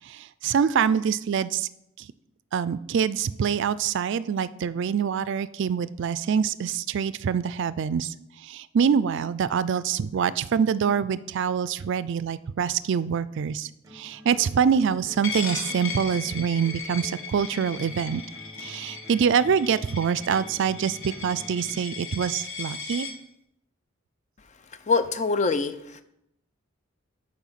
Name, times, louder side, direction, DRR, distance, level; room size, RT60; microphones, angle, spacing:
voice 1, 0.1-1.7 2.5-8.1 8.4-13.7 13.9-18.2 18.6-23.1, right 7 dB, 60° right, 16 dB, 0.4 m, -25 dB
sound 1, 13.8-21.8, equal, 15° right, 1.0 m, -47 dB
Coin (dropping), 15.2-23.1, left 5 dB, 70° left, 1.1 m, -37 dB
voice 2, 24.9-26.0, left 4 dB, 35° left, 11 dB, 0.5 m, -24 dB
9.1 x 4.4 x 5.6 m, 0.79 s
head